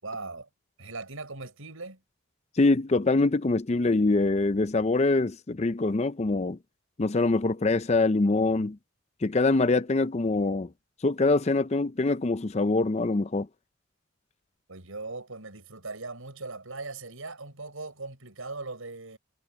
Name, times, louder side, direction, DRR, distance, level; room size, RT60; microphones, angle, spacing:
voice 1, 0.0-0.5 0.8-2.0 14.7-19.2, right 3 dB, 90° right, 6.2 m, -39 dB
voice 2, 2.6-6.6 7.0-8.8 9.2-10.7 11.0-13.5, left 3 dB, 30° left, 0.5 m, -24 dB
head